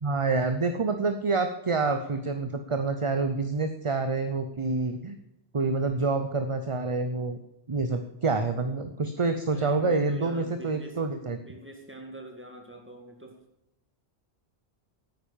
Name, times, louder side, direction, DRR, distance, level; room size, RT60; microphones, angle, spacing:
voice 1, 0.0-5.2 5.5-7.4 7.7-11.4, right 3 dB, 35° right, 8 dB, 0.7 m, -27 dB
voice 2, 9.5-11.0 11.4-13.4, right 2 dB, 10° right, 2 dB, 2.2 m, -44 dB
9.4 x 9.2 x 7.2 m, 0.86 s
omnidirectional pair, 1.1 m